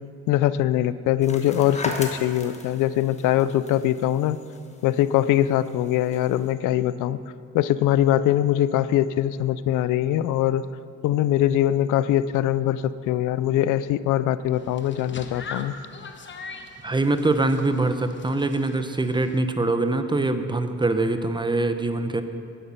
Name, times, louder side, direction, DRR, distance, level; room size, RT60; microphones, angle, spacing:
voice 1, 0.3-4.4 4.8-7.2 7.5-10.6 11.0-15.7, left 12 dB, 90° left, 16 dB, 0.5 m, -22 dB
sound 1, 1.2-6.5, left 2 dB, 20° left, 1.4 m, -38 dB
sound 2, 14.5-19.4, left 4 dB, 40° left, 1.1 m, -41 dB
voice 2, 16.8-22.2, right 2 dB, 15° right, 9 dB, 0.8 m, -23 dB
11.5 x 10.0 x 5.7 m, 2.3 s
cardioid pair, 90°, 30 cm